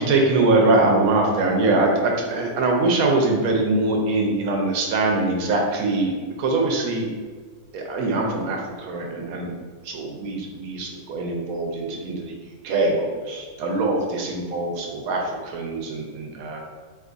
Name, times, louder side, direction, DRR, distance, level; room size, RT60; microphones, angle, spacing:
voice 1, 0.0-7.1 7.7-9.5 9.8-12.3 12.6-16.6, right 2 dB, 75° right, 1 dB, 1.0 m, -23 dB
2.7 x 2.4 x 3.7 m, 1.5 s
omnidirectional pair, 1.6 m